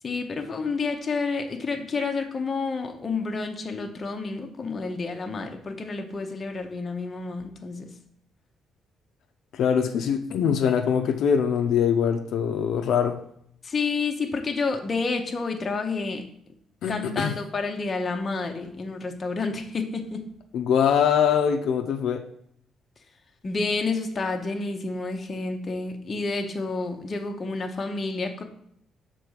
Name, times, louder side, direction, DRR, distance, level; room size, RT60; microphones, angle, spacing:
voice 1, 0.0-7.9 13.6-16.2 16.9-20.3 23.4-28.4, left 4 dB, 25° left, 4 dB, 0.7 m, -29 dB
voice 2, 9.5-13.2 16.8-17.3 20.5-22.2, left 7 dB, 60° left, 6 dB, 0.5 m, -23 dB
6.6 x 3.8 x 6.4 m, 0.70 s
cardioid pair, 175°, 0 cm